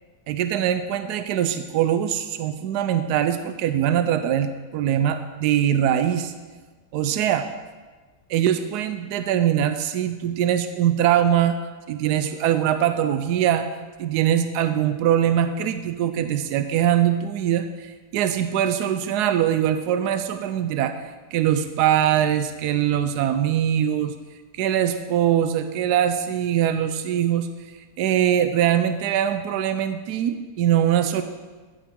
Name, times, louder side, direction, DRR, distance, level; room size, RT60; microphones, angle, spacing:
voice 1, 0.3-6.3 6.9-7.5 8.3-11.6 11.9-13.7 14.0-20.9 21.3-24.1 24.6-27.5 28.0-31.2, right 10 dB, 80° right, 9 dB, 1.2 m, -22 dB
15.0 x 8.6 x 3.7 m, 1.3 s
omnidirectional pair, 1.7 m